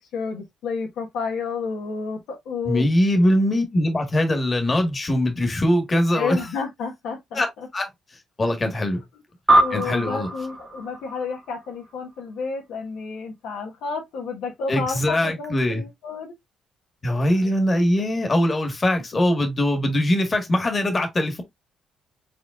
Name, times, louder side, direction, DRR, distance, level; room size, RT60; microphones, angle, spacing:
voice 1, 0.1-2.8 6.1-7.7 9.6-16.3 17.2-17.5, left 5 dB, 85° left, 1.2 m, -31 dB
voice 2, 2.6-6.4 7.3-7.5 7.7-7.9 8.4-9.0 9.7-10.3 14.7-15.8 17.0-21.4, left 1 dB, 30° left, 1.5 m, -21 dB
sound 1, 9.5-12.2, right 1 dB, 15° right, 0.9 m, -23 dB
5.1 x 3.9 x 2.3 m
cardioid pair, 90°, 0 cm